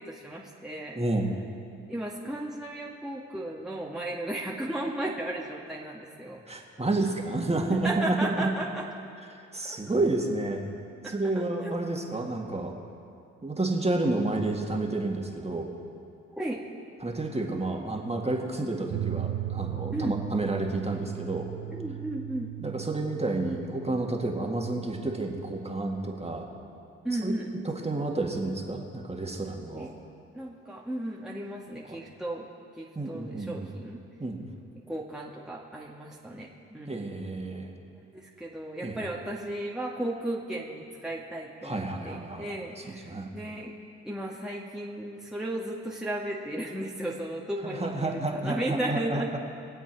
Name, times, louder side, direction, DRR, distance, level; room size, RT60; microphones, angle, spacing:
voice 1, 0.0-1.0 1.9-6.4 7.8-8.9 9.6-9.8 11.0-11.8 16.3-16.6 19.9-20.2 21.7-22.5 27.0-27.5 29.6-29.9 30.3-32.5 32.8-34.0 34.7-37.0 38.0-43.7 44.0-49.3, right 1 dB, ahead, -4 dB, 1.7 m, -35 dB
voice 2, 1.0-1.3 6.5-8.5 9.5-10.6 11.0-12.7 13.4-15.7 17.0-21.5 22.6-26.5 27.1-27.3 27.6-29.9 31.9-32.0 33.0-33.7 34.2-34.4 36.9-37.7 38.8-39.0 41.6-43.3 47.6-49.4, right 2 dB, 20° right, 0 dB, 2.1 m, -30 dB
sound 1, 18.9-25.8, right 12 dB, 55° right, 0.7 m, -37 dB
22.0 x 8.0 x 4.7 m, 2.5 s
hypercardioid pair, 40°, 33 cm